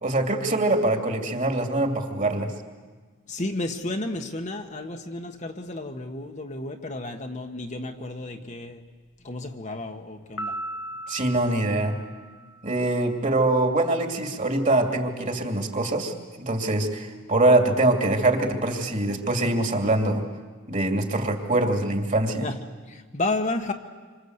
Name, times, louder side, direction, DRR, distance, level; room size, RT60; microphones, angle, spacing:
voice 1, 0.0-2.5 11.1-12.0 12.6-16.1 16.4-20.2 20.7-22.5, right 2 dB, 35° right, 4 dB, 2.6 m, -23 dB
voice 2, 3.3-8.8 9.2-10.5 22.4-22.5 22.9-23.7, left 2 dB, 35° left, 4 dB, 1.3 m, -32 dB
Piano, 10.4-12.9, right 1 dB, 65° left, 1.5 m, -37 dB
27.0 x 25.5 x 8.0 m, 1.4 s
head